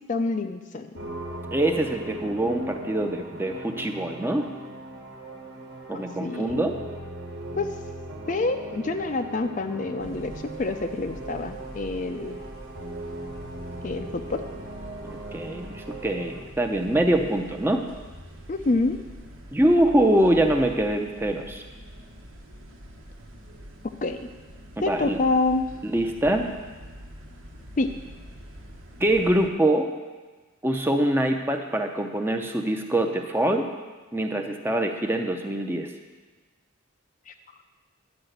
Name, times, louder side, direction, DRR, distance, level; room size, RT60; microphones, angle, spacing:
voice 1, 0.1-1.1 5.9-6.7 7.5-7.7 8.3-12.4 13.8-14.4 18.5-19.0 24.0-24.2 24.8-25.7 27.8-27.9 37.3-37.4, left 3 dB, 40° left, 7 dB, 0.4 m, -27 dB
sound 1, 0.9-16.4, right 1 dB, 55° right, 1.3 m, -39 dB
voice 2, 1.5-4.5 5.9-6.8 15.0-17.8 19.5-21.6 24.8-25.2 25.8-26.5 29.0-29.9 30.6-33.7 34.1-35.9, right 1 dB, 10° right, 4 dB, 0.6 m, -24 dB
sound 2, 10.0-29.5, equal, 85° right, 1.2 m, -44 dB
10.5 x 4.9 x 7.9 m, 1.3 s
head